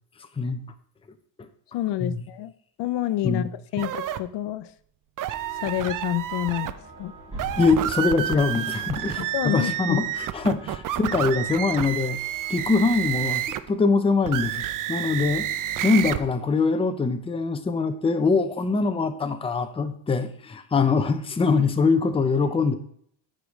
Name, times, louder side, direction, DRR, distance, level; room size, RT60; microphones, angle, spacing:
voice 1, 1.7-2.5 2.8-4.7 5.5-7.1 9.2-10.1, left 13 dB, 70° left, 14 dB, 0.6 m, -28 dB
sound 1, 3.8-4.2 5.2-6.7 7.3-13.7 14.2-16.2, right 12 dB, 50° right, 0.5 m, -29 dB
sound 2, 5.3-12.7, right 2 dB, 15° right, 2.8 m, -44 dB
voice 2, 7.6-12.2 12.5-15.5 15.8-22.7, left 4 dB, 15° left, 8 dB, 0.5 m, -23 dB
13.0 x 5.0 x 3.1 m, 0.65 s
cardioid pair, 140°, 43 cm